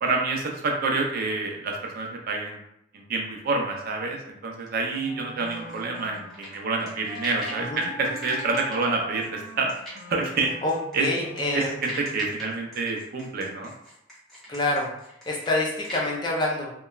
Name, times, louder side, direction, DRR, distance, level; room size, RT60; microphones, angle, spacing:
voice 1, 0.0-2.6 2.9-9.7 10.1-10.5 10.9-11.1 11.5-13.7, right 3 dB, 50° right, 1 dB, 0.4 m, -28 dB
Wind instrument woodwind instrument, 4.9-12.4, equal, 75° left, 1.4 m, -42 dB
sound 1, 5.5-7.7 8.2-16.1, equal, ahead, 0.9 m, -41 dB
voice 2, 11.0-11.7 14.5-14.9 15.3-16.7, left 2 dB, 25° left, -3 dB, 0.5 m, -26 dB
2.9 x 2.1 x 2.2 m, 0.75 s
head